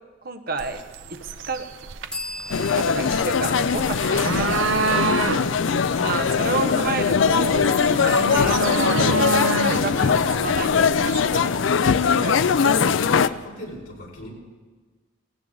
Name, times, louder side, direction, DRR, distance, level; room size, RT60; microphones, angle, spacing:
voice 1, 0.2-0.8 1.1-1.2 1.5-1.7 2.7-5.1 6.0-7.7 8.0-9.1 9.6-12.8, right 3 dB, 45° right, 8 dB, 1.0 m, -30 dB
sound 1, 0.6-11.4, right 4 dB, 70° right, 0.6 m, -29 dB
sound 2, 2.1-5.7, left 1 dB, 5° left, 1.0 m, -40 dB
sound 3, 2.5-13.3, left 6 dB, 65° left, 0.4 m, -21 dB
voice 2, 4.1-4.6 5.3-5.9 13.2-14.3, left 1 dB, 85° left, -2 dB, 4.6 m, -40 dB
17.5 x 17.0 x 3.9 m, 1.4 s
head